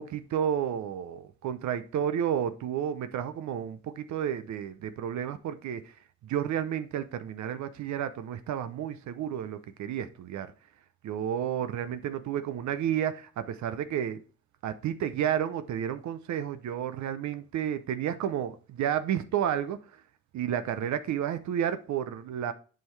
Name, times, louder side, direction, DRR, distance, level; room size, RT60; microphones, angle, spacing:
voice 1, 0.0-5.9 6.2-10.5 11.0-14.2 14.6-19.8 20.3-22.5, right 9 dB, 70° right, 0.7 m, -31 dB
7.6 x 5.7 x 3.3 m
cardioid pair, 90°, 30 cm